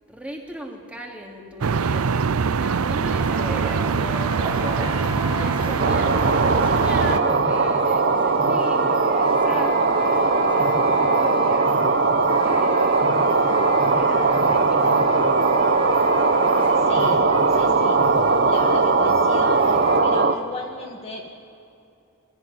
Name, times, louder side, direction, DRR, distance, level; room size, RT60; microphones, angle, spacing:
voice 1, 0.1-4.4 5.2-11.7 12.4-13.1 14.0-15.6, equal, 5° right, 0 dB, 2.8 m, -38 dB
sound 1, 1.6-7.2, right 5 dB, 90° right, 0.6 m, -23 dB
sound 2, 3.1-20.0, equal, 25° right, 3.5 m, -33 dB
sound 3, 5.8-20.3, right 3 dB, 50° right, 1.1 m, -19 dB
voice 2, 16.8-18.0 18.4-21.3, left 1 dB, 30° left, 0 dB, 2.0 m, -36 dB
25.0 x 17.0 x 9.9 m, 2.6 s
head